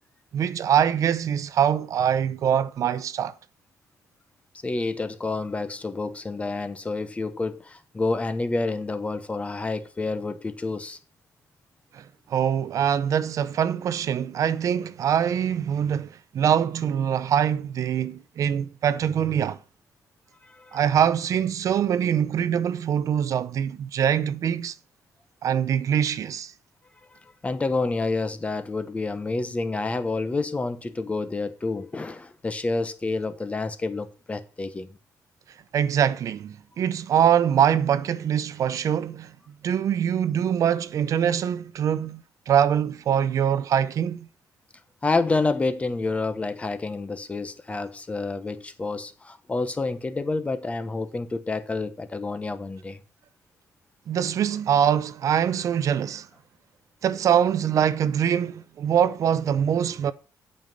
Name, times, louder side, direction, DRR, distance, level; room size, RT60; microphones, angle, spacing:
voice 1, 0.3-3.3 11.9-19.6 20.7-24.7 25.4-26.5 35.7-39.3 39.6-44.3 54.1-56.3 57.0-60.1, right 9 dB, 60° right, 0.6 m, -23 dB
voice 2, 4.6-11.0 20.4-20.8 27.1-34.9 45.0-53.0, left 3 dB, 20° left, 1.0 m, -29 dB
8.5 x 5.5 x 7.6 m
cardioid pair, 125°, 6 cm